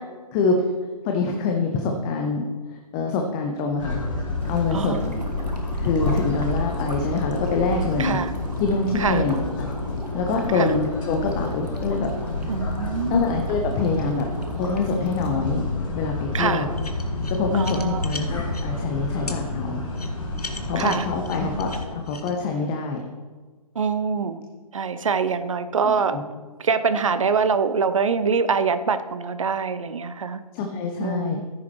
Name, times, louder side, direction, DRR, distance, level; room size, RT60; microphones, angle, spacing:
voice 1, 0.3-0.7 1.0-2.5 2.9-4.0 4.5-5.0 5.8-8.2 8.6-9.7 10.1-12.1 12.4-12.5 13.1-14.3 14.6-15.6 15.9-16.7 17.3-19.8 20.7-23.0 26.1-26.2 30.5-31.4, left 4 dB, 10° left, 3 dB, 0.4 m, -25 dB
sound 1, 3.8-21.8, left 2 dB, 55° left, 3.1 m, -29 dB
sound 2, 4.4-15.3, right 1 dB, 90° right, 1.5 m, -41 dB
voice 2, 4.7-5.2 8.0-8.3 8.9-9.2 10.5-10.7 12.5-13.2 16.3-16.6 17.5-18.1 20.8-21.1 23.7-24.4 24.7-26.2 26.6-30.4 31.0-31.4, right 5 dB, 55° right, 11 dB, 0.7 m, -24 dB
sound 3, 16.8-18.7 19.3-19.4 19.9-22.3, left 3 dB, 70° left, 1.3 m, -37 dB
14.5 x 6.9 x 3.1 m, 1.4 s
figure-of-eight pair, 135°, 20 cm